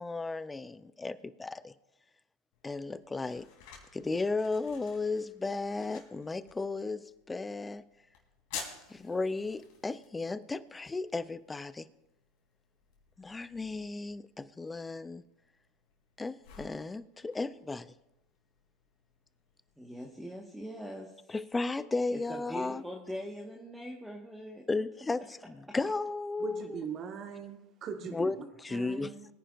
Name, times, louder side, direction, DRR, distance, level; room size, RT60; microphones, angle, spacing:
voice 1, 0.0-1.7 2.6-3.5 3.9-7.8 8.9-11.9 13.2-15.2 16.2-17.9 21.3-22.8 24.7-26.7 28.1-28.4 28.6-29.1, left 3 dB, 15° left, 16 dB, 0.6 m, -34 dB
sound 1, 2.5-20.1, left 6 dB, 65° left, 3.2 m, -52 dB
voice 2, 19.8-21.1 22.1-24.7, equal, 5° right, -1 dB, 1.6 m, -42 dB
voice 3, 26.4-28.4 28.7-29.3, right 6 dB, 45° right, 4 dB, 1.7 m, -40 dB
22.5 x 10.0 x 2.6 m, 0.95 s
hypercardioid pair, 90°, 0 cm